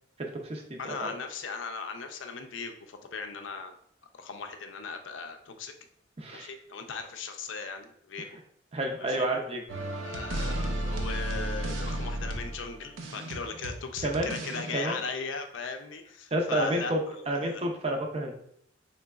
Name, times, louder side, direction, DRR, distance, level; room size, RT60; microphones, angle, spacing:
voice 1, 0.2-1.1 6.2-6.5 8.7-9.6 14.0-14.4 14.7-15.0 16.3-18.4, right 1 dB, 30° right, 2 dB, 0.5 m, -30 dB
voice 2, 0.8-3.8 4.2-5.7 6.3-8.3 9.0-9.3 10.0-17.6, left 5 dB, 70° left, 6 dB, 0.4 m, -38 dB
sound 1, 9.7-14.8, right 1 dB, 80° right, 0.5 m, -33 dB
3.8 x 3.2 x 2.3 m, 0.70 s
head